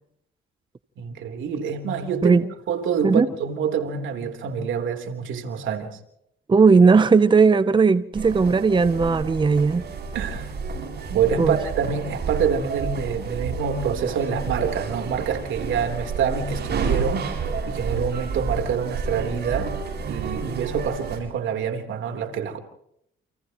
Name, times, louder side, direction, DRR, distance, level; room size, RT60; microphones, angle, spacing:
voice 1, 1.0-2.4 2.7-6.0 10.1-10.5 11.1-19.8 20.1-22.6, right 7 dB, 75° right, 3.8 m, -26 dB
voice 2, 6.5-9.8 11.4-11.6, right 4 dB, 25° right, 0.7 m, -17 dB
sound 1, 8.1-21.2, right 4 dB, 60° right, 7.5 m, -30 dB
29.5 x 29.0 x 3.1 m
cardioid pair, 90°, 20 cm